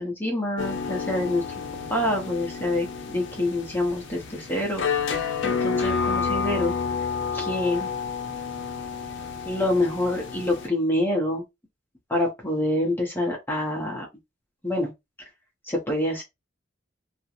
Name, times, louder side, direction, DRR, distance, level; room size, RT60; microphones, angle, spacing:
voice 1, 0.0-1.4 1.9-4.8 5.4-6.7 7.3-7.9 9.4-11.4 12.1-14.1 14.6-14.9 15.6-16.2, left 1 dB, 10° left, 0.7 m, -26 dB
Tanpura Slow plucking and gentle slap bass E minor, 0.6-10.7, left 5 dB, 65° left, 0.6 m, -30 dB
2.4 x 2.1 x 2.7 m
head